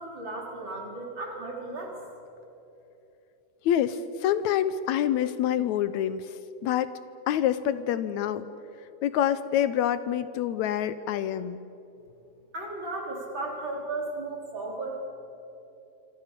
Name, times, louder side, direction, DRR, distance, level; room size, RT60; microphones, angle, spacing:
voice 1, 0.0-2.0 12.5-15.0, right 2 dB, 40° right, -1 dB, 4.9 m, -35 dB
voice 2, 3.7-6.3 6.6-6.9 7.3-8.5 9.0-11.6, left 10 dB, 80° left, 13 dB, 2.1 m, -26 dB
26.5 x 25.5 x 6.8 m, 2.9 s
omnidirectional pair, 3.4 m